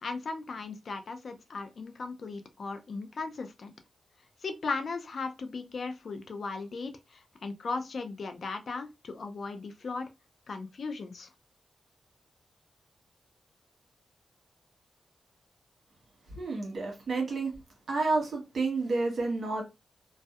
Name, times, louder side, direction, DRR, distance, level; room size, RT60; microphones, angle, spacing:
voice 1, 0.0-3.7 4.4-10.1 10.5-11.3, left 4 dB, 65° left, 0.4 m, -37 dB
voice 2, 16.3-17.5 17.9-19.6, right 3 dB, 65° right, 1.1 m, -30 dB
2.6 x 2.1 x 2.3 m
cardioid pair, 80°, 0 cm